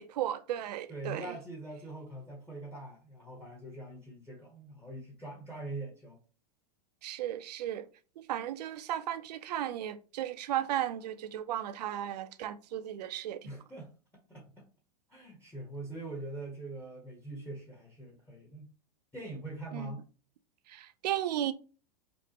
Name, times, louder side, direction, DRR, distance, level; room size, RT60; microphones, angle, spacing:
voice 1, 0.0-1.3 7.0-7.9 8.2-13.5 19.7-19.9 20.7-21.5, right 12 dB, 80° right, 0.5 m, -35 dB
voice 2, 0.9-6.2 13.4-13.9 14.3-14.7 15.1-18.7 19.1-20.0, right 2 dB, 10° left, 0.9 m, -43 dB
5.1 x 2.1 x 2.8 m
hypercardioid pair, 130°, 21 cm